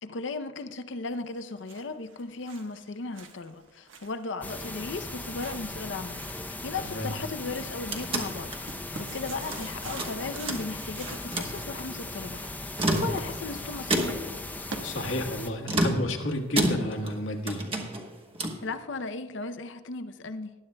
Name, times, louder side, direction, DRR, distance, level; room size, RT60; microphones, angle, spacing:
voice 1, 0.0-6.2 6.6-8.5 9.0-12.4 12.9-14.2 18.6-20.5, left 3 dB, 70° left, 0.6 m, -36 dB
sound 1, 1.3-15.5, right 3 dB, 75° right, 1.2 m, -47 dB
sound 2, 4.4-15.5, left 2 dB, 10° left, 0.6 m, -38 dB
sound 3, 7.4-9.6 10.0-10.9 11.2-11.6 12.6-13.5 13.9-14.4 15.6-17.2 17.5-18.7, right 1 dB, 30° right, 1.2 m, -30 dB
voice 2, 14.8-17.6, left 1 dB, 85° left, 1.4 m, -31 dB
19.5 x 11.0 x 2.2 m
head